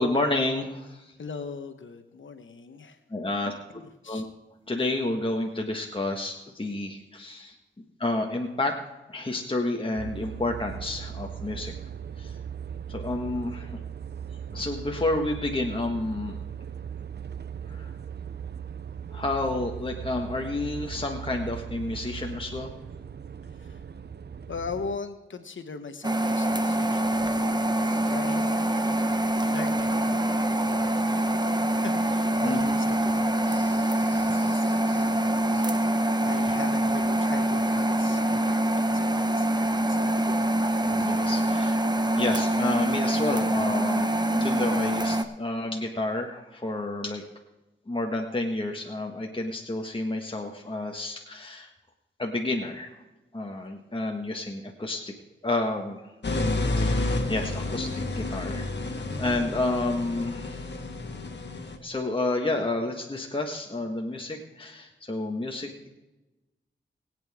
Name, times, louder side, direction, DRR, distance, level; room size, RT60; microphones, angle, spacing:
voice 1, 0.0-1.1 3.1-3.5 4.1-4.2 4.7-7.5 8.0-8.7 9.1-11.7 12.2-12.4 12.9-13.8 14.5-16.4 17.7-17.9 19.1-22.7 32.4-32.8 33.5-35.0 35.5-35.8 40.8-41.8 42.1-47.2 47.9-51.7 52.2-53.0 53.3-55.1 55.4-56.0 56.8-60.7 61.8-65.9, left 2 dB, 25° left, 1 dB, 1.6 m, -30 dB
voice 2, 1.2-3.0 3.4-4.3 23.5-23.8 24.5-28.8 29.5-30.2 30.6-35.4 35.9-40.5 41.7-42.1, left 5 dB, 75° left, 8 dB, 1.0 m, -41 dB
sound 1, 10.0-25.0, right 8 dB, 55° right, 0.6 m, -38 dB
sound 2, 26.0-45.2, right 1 dB, 20° right, 1.1 m, -25 dB
sound 3, 56.2-61.8, left 2 dB, 60° left, 1.7 m, -30 dB
21.5 x 8.9 x 3.6 m, 1.1 s
cardioid pair, 55°, 20 cm